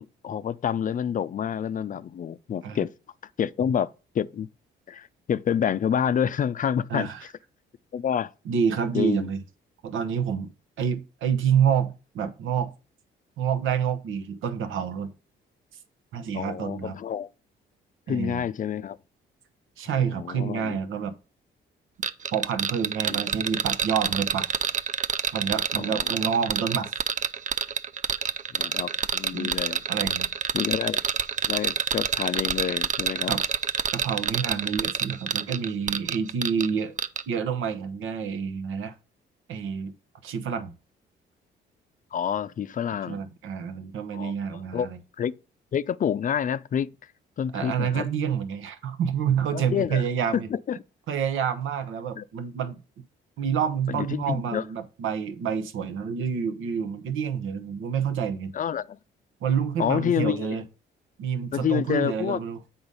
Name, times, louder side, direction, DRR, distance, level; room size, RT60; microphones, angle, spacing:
voice 1, 0.0-2.9 3.4-4.5 4.9-7.1 7.9-8.3 8.9-9.3 16.3-17.3 18.1-19.0 19.9-20.8 23.0-23.2 25.8-26.1 28.6-29.8 30.5-31.0 31.5-33.3 42.1-43.3 44.1-44.9 45.2-45.3 45.7-46.9 47.4-48.0 49.5-50.0 50.3-50.8 52.2-52.3 53.9-54.6 58.5-59.0 59.8-60.6 61.5-62.4, left 8 dB, 40° left, 0.4 m, -28 dB
voice 2, 6.9-7.2 8.4-9.4 9.8-10.5 10.8-12.7 13.4-15.1 16.1-17.0 18.1-18.4 19.8-21.1 22.3-24.5 25.3-26.9 29.3-29.5 29.9-30.3 33.3-33.4 33.9-36.9 37.3-38.9 39.5-39.9 40.2-40.7 43.1-45.0 47.5-50.5 51.1-52.8 53.4-58.5 59.4-60.6 61.2-62.6, right 7 dB, 85° right, 1.0 m, -28 dB
sound 1, 22.0-36.7 37.0-37.2, right 7 dB, 40° right, 0.5 m, -27 dB
8.0 x 3.9 x 5.5 m
cardioid pair, 90°, 20 cm